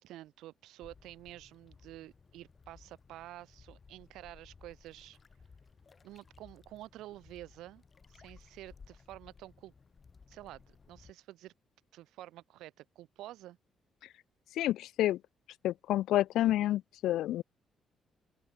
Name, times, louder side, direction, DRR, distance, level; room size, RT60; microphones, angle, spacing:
voice 1, 0.0-5.2 6.0-7.8 8.1-9.7 10.3-11.5 11.9-13.6 16.5-16.8, right 15 dB, 90° right, 2.7 m, -50 dB
sound 1, 0.8-11.1, left 5 dB, 35° left, 2.3 m, -59 dB
voice 2, 14.6-15.2 15.6-17.4, left 13 dB, 85° left, 0.4 m, -29 dB
open air
cardioid pair, 90°, 0 cm